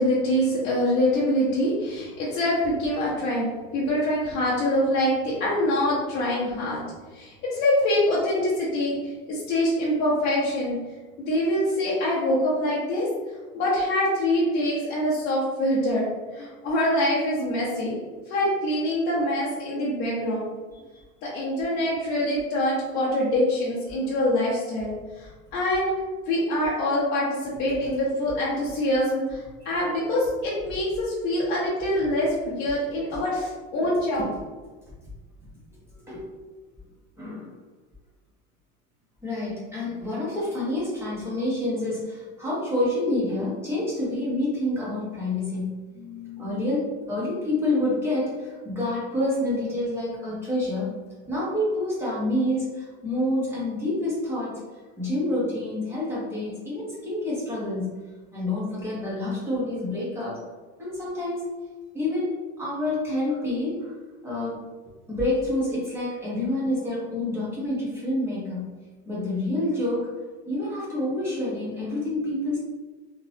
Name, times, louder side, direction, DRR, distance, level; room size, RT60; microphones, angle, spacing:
voice 1, 0.0-6.8 7.1-10.7 11.3-13.1 13.5-16.0 16.3-18.0 18.3-20.5 21.2-25.9 26.3-34.2, left 1 dB, 35° left, -8 dB, 0.7 m, -25 dB
voice 2, 37.2-37.5 39.2-50.9 51.2-54.5 55.0-57.9 58.3-60.4 60.8-61.5 61.9-62.3 62.6-63.9 64.2-64.6 65.1-68.7 69.1-70.1 70.5-72.6, left 1 dB, 10° right, -7 dB, 1.0 m, -28 dB
3.7 x 2.9 x 2.7 m, 1.3 s
cardioid pair, 175°, 29 cm